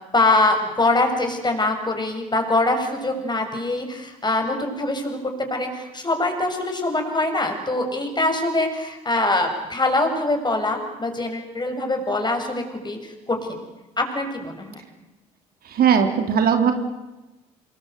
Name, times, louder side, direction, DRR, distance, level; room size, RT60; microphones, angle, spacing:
voice 1, 0.1-5.2 5.5-13.6 14.0-14.8, left 2 dB, 25° left, 4 dB, 7.4 m, -23 dB
voice 2, 15.6-16.7, right 7 dB, 60° right, 6 dB, 3.3 m, -18 dB
27.0 x 22.0 x 8.3 m, 1.0 s
hypercardioid pair, 50°, 18 cm